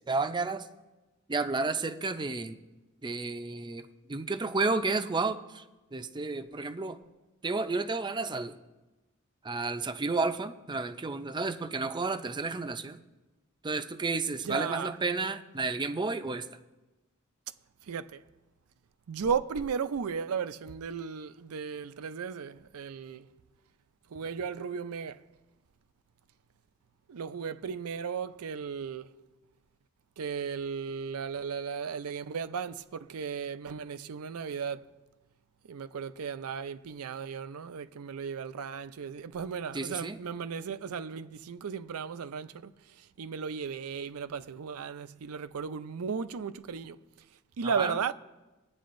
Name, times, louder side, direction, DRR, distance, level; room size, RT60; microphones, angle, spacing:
voice 1, 0.1-0.7 1.3-2.6 3.0-5.6 5.9-7.0 7.4-8.5 9.4-13.0 13.6-16.5 39.7-40.2 47.6-47.9, right 3 dB, 20° right, 0.5 m, -31 dB
voice 2, 14.4-15.0 17.9-18.2 19.1-23.3 24.1-25.2 27.1-29.1 30.2-34.9 35.7-47.0 47.6-48.1, right 6 dB, 80° right, 0.5 m, -35 dB
22.0 x 9.3 x 2.6 m
head